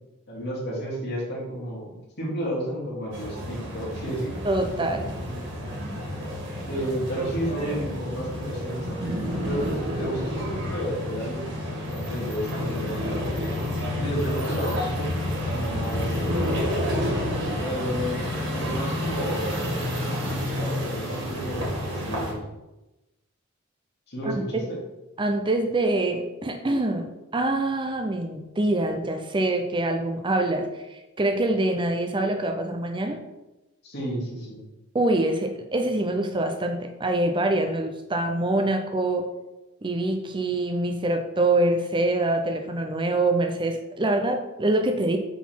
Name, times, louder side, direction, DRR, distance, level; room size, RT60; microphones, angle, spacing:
voice 1, 0.3-1.9 2.2-4.3 5.3-5.5 6.7-8.9 9.4-9.7 10.0-13.3 14.0-16.2 17.6-18.3 18.6-19.6 19.9-20.0 20.5-22.4 24.1-24.8 33.8-34.6, equal, 55° left, -6 dB, 2.4 m, -32 dB
sound 1, 3.1-22.3, left 1 dB, 65° right, 2.4 m, -31 dB
voice 2, 4.4-5.1 24.2-24.6 25.2-27.1 27.3-33.2 34.9-39.2 39.8-45.2, right 2 dB, 25° right, 5 dB, 0.6 m, -25 dB
sound 2, 8.8-10.8 12.5-14.2 15.5-17.8 19.1-19.3, equal, 80° right, 1.7 m, -31 dB
8.2 x 4.0 x 4.5 m, 1.0 s
head